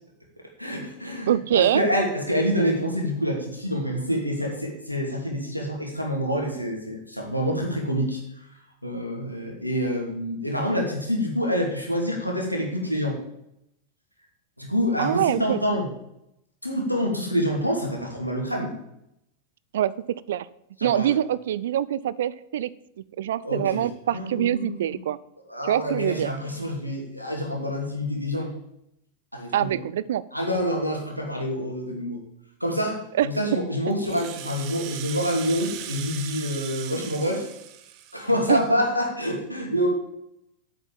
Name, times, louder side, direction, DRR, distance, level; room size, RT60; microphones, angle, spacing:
voice 1, 0.6-8.2 8.8-13.2 14.6-15.9 16.6-18.8 20.8-21.2 23.4-23.8 24.1-25.0 25.5-28.5 29.3-29.8 30.3-32.2 32.6-37.5 38.1-39.9, equal, 90° left, 0 dB, 2.8 m, -27 dB
voice 2, 1.3-1.9 15.0-15.6 19.7-19.9 20.3-20.5 20.8-22.7 23.2-25.2 25.6-26.3 29.5-30.2 33.1-33.3 38.5-38.6, right 11 dB, 60° right, 18 dB, 0.5 m, -24 dB
Rattle (instrument), 33.9-38.7, right 11 dB, 45° right, 1.0 m, -39 dB
8.6 x 7.9 x 7.7 m, 0.80 s
figure-of-eight pair, 90°, 0 cm